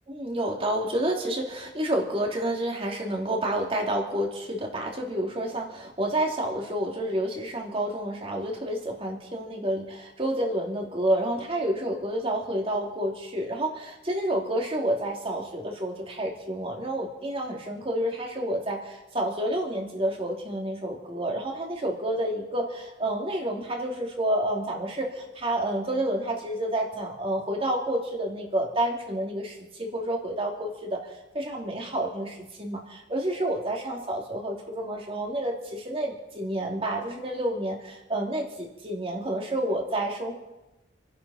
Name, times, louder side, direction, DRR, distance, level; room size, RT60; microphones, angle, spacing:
voice 1, 0.1-31.0 31.3-40.3, right 1 dB, 30° right, 0 dB, 2.8 m, -29 dB
28.0 x 10.5 x 4.3 m, 1.0 s
head